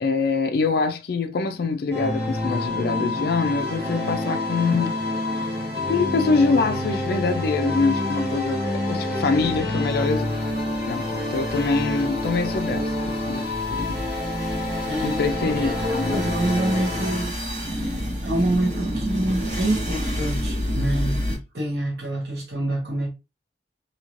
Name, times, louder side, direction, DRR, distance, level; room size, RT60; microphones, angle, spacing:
voice 1, 0.0-4.9 5.9-10.2 10.9-13.5 13.7-14.0 15.0-16.2, left 4 dB, 60° left, 0.4 m, -24 dB
sound 1, 1.9-17.3, left 1 dB, 80° right, 1.3 m, -27 dB
Guitar, 4.8-12.6, right 3 dB, ahead, 1.3 m, -47 dB
sound 2, 9.4-21.4, equal, 45° right, 1.2 m, -31 dB
voice 2, 14.9-23.1, right 1 dB, 65° right, 1.1 m, -27 dB
3.1 x 2.8 x 2.5 m
head